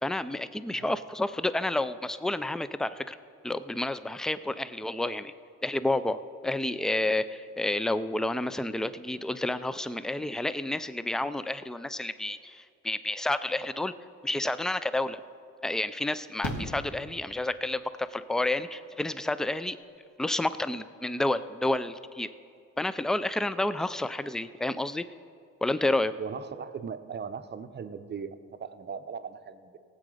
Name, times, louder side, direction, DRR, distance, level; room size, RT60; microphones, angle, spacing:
voice 1, 0.0-3.2 3.4-5.3 5.6-13.9 14.2-15.2 15.6-19.8 20.2-22.3 22.8-25.0 25.6-26.1, left 2 dB, ahead, 14 dB, 0.3 m, -30 dB
Fireworks, 14.7-14.8 16.4-17.7 19.5-19.6 19.8-19.9, left 1 dB, 60° left, 2.6 m, -37 dB
voice 2, 26.2-29.8, right 6 dB, 35° right, 10 dB, 0.7 m, -39 dB
17.5 x 7.8 x 4.9 m, 2.4 s
cardioid pair, 90°, 30 cm